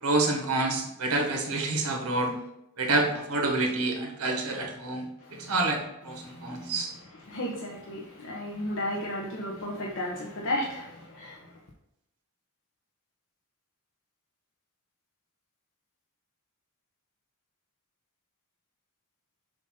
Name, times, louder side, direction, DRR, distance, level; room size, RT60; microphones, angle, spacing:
voice 1, 0.0-2.3 2.8-5.1 5.5-6.9, right 2 dB, 75° right, 2 dB, 1.4 m, -28 dB
voice 2, 5.2-5.5 6.1-11.5, left 1 dB, 60° left, -2 dB, 0.9 m, -34 dB
7.0 x 2.7 x 5.5 m, 0.85 s
head